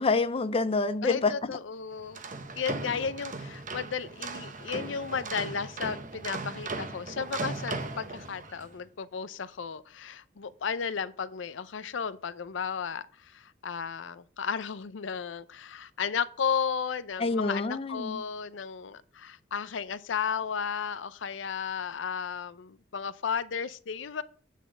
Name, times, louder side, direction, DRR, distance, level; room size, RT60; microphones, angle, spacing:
voice 1, 0.0-1.6 17.2-18.2, left 3 dB, 30° left, 0.5 m, -27 dB
voice 2, 1.0-2.2 2.6-24.2, left 6 dB, 85° left, 0.5 m, -34 dB
sound 1, 2.0-8.7, right 3 dB, 45° right, 0.9 m, -38 dB
9.1 x 4.1 x 7.4 m
head